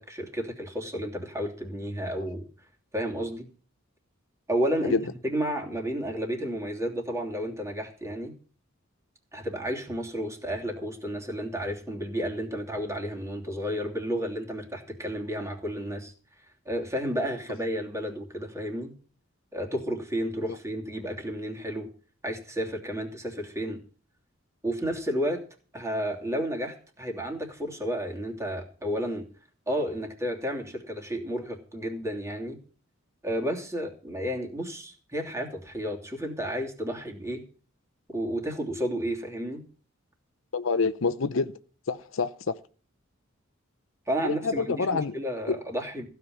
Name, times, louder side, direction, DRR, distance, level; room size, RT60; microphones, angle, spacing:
voice 1, 0.0-2.5 2.9-3.5 4.5-5.0 5.2-8.3 9.3-16.1 16.6-18.9 19.5-21.9 22.2-23.8 24.6-25.4 25.7-29.2 29.7-32.6 33.2-37.4 38.1-39.6 44.1-46.1, equal, 15° right, 3.0 m, -32 dB
voice 2, 40.5-41.5 41.9-42.3 44.2-45.1 45.5-45.6, left 4 dB, 70° left, 0.7 m, -26 dB
15.5 x 5.9 x 9.2 m
head